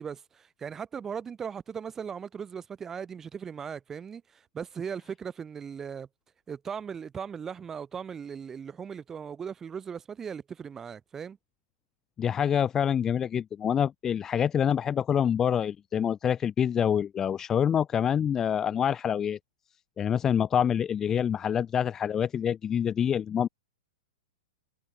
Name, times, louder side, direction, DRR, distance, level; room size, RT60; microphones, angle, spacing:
voice 1, 0.0-6.1 6.5-11.4, right 7 dB, 15° right, 2.9 m, -38 dB
voice 2, 12.2-19.4 20.0-23.5, left 8 dB, 15° left, 0.9 m, -26 dB
hypercardioid pair, 160°, 3 cm